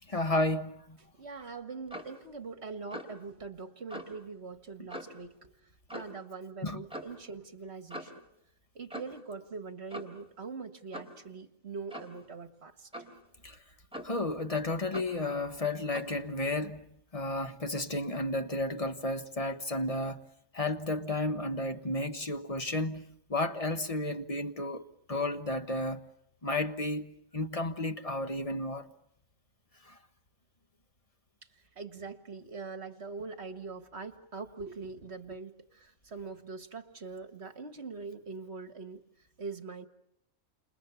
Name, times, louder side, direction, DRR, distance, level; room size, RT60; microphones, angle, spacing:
voice 1, 0.1-1.0 6.6-6.8 13.4-13.6 14.0-16.8 17.1-20.2 20.5-23.0 23.3-24.8 25.1-26.0 26.4-28.9, left 2 dB, 30° left, 1.4 m, -32 dB
voice 2, 1.1-5.5 5.9-8.1 8.8-12.9 31.8-39.0 39.4-39.9, right 4 dB, 55° right, 1.8 m, -43 dB
Clock, 1.9-2.2 2.9-3.2 3.9-4.1 4.9-5.2 5.9-6.2 6.9-7.2 7.9-8.2 8.9-9.2 9.9-10.2 10.9-11.2 11.9-12.2 12.9-13.2 13.9-14.3 14.9-15.2 15.9-16.2, equal, 5° right, 3.7 m, -43 dB
29.5 x 28.0 x 7.0 m
omnidirectional pair, 1.3 m